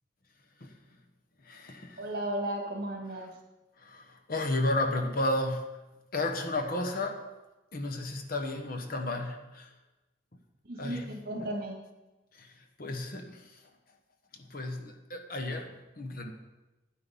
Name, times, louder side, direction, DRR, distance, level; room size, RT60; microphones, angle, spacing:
voice 1, 1.4-2.1 3.8-5.8 6.1-7.3 7.7-9.7 10.8-11.5 12.3-13.6 14.3-16.3, left 2 dB, 50° left, 5 dB, 1.2 m, -33 dB
voice 2, 2.0-3.3 10.7-11.8, right 1 dB, 55° right, 1 dB, 2.4 m, -35 dB
10.0 x 9.9 x 5.5 m, 1.1 s
head